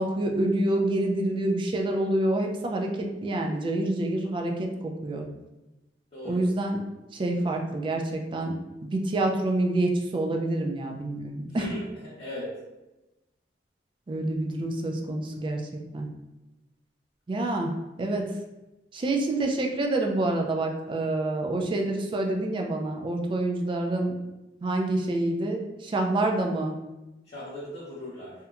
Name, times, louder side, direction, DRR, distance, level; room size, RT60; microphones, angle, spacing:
voice 1, 0.0-5.3 6.2-6.8 7.1-8.6 8.8-11.7 14.1-15.6 15.9-16.1 17.3-17.7 18.0-18.3 18.9-24.1 24.6-26.7, right 2 dB, 30° right, 2 dB, 0.3 m, -27 dB
voice 2, 11.5-11.8 12.2-12.5 27.3-28.3, left 1 dB, 35° left, -10 dB, 0.6 m, -37 dB
2.8 x 2.2 x 2.4 m, 1.0 s
head